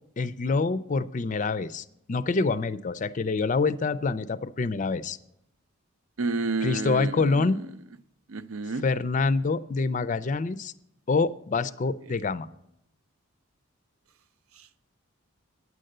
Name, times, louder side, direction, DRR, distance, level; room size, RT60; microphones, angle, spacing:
voice 1, 0.2-5.2 6.6-7.6 8.8-10.7 11.1-12.5, left 4 dB, 35° left, 16 dB, 0.4 m, -26 dB
voice 2, 6.2-7.3 8.3-8.8, right 3 dB, 80° right, 13 dB, 0.6 m, -29 dB
9.5 x 7.7 x 6.5 m, 0.80 s
head